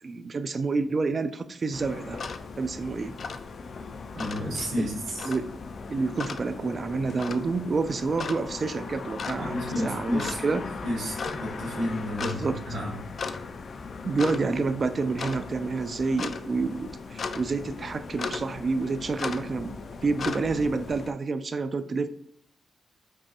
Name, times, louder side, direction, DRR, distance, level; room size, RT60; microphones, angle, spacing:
voice 1, 0.0-2.2 2.6-3.1 4.8-4.9 5.2-5.5 5.9-10.6 12.2-12.6 14.0-22.1, right 4 dB, 45° right, 11 dB, 0.3 m, -28 dB
sound 1, 1.7-21.1, left 4 dB, 60° left, 0.3 m, -37 dB
voice 2, 4.1-5.3 9.4-10.4 10.8-13.0, equal, 85° right, -5 dB, 1.5 m, -31 dB
5.3 x 2.5 x 2.7 m, 0.72 s
cardioid pair, 70°, 0 cm